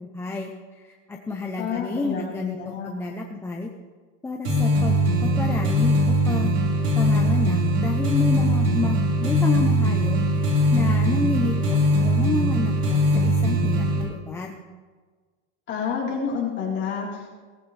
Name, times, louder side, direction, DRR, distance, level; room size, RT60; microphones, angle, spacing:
voice 1, 0.0-3.7 4.2-6.5 7.0-10.2 10.7-14.6, left 3 dB, 5° left, 1 dB, 0.5 m, -30 dB
voice 2, 1.6-2.9 15.7-17.3, left 6 dB, 30° left, -4 dB, 3.9 m, -29 dB
sound 1, 4.4-14.0, equal, 90° right, 4.4 m, -21 dB
17.5 x 13.5 x 3.3 m, 1.4 s
supercardioid pair, 160°, 36 cm